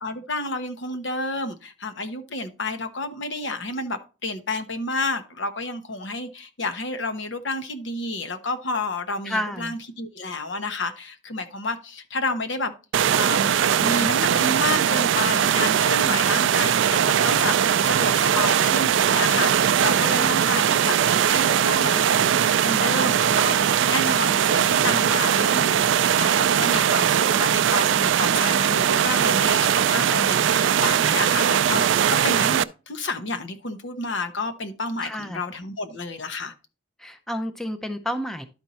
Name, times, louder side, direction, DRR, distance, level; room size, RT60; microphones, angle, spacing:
voice 1, 0.0-12.7 13.1-23.6 23.9-25.8 26.2-36.5, left 2 dB, 70° left, 1.0 m, -30 dB
voice 2, 9.3-9.8 20.0-20.4 35.0-35.4 37.0-38.4, equal, ahead, 0.6 m, -30 dB
sound 1, 12.9-32.6, right 9 dB, 75° right, 0.4 m, -20 dB
11.5 x 4.5 x 4.1 m
head